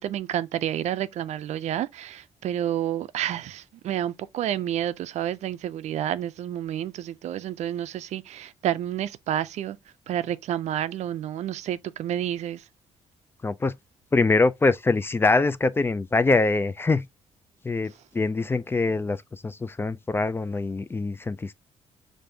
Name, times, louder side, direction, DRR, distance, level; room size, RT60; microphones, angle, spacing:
voice 1, 0.0-9.8 10.1-12.6, right 11 dB, 70° right, 0.4 m, -29 dB
voice 2, 13.4-13.8 14.1-17.1 17.6-21.5, left 3 dB, 20° left, 0.3 m, -24 dB
5.1 x 2.6 x 3.3 m
cardioid pair, 100°, 12 cm